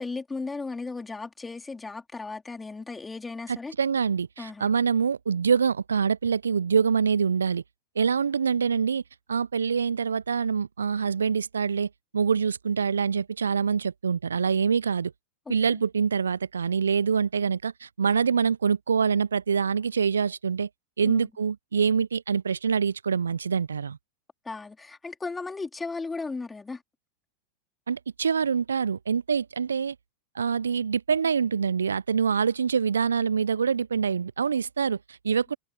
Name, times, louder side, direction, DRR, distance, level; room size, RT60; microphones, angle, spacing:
voice 1, 0.0-3.7 4.4-4.7 15.5-15.8 21.0-21.3 24.5-26.8, left 3 dB, 10° left, 3.7 m, -36 dB
voice 2, 3.5-7.6 8.0-9.0 9.3-15.1 15.5-20.7 21.0-24.0 27.9-30.0 30.3-35.6, right 6 dB, 75° right, 0.4 m, -25 dB
figure-of-eight pair, 90°, 0 cm